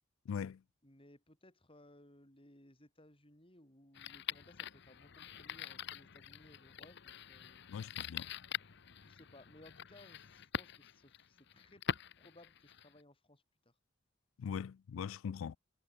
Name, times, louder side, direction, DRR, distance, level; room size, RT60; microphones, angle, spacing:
voice 1, 0.3-0.6 7.7-8.3 14.4-15.6, left 7 dB, 80° left, 0.3 m, -41 dB
voice 2, 0.8-7.6 9.0-13.7, left 1 dB, 25° left, 8.0 m, -62 dB
sound 1, 3.9-13.0, left 8 dB, 55° left, 0.8 m, -45 dB
head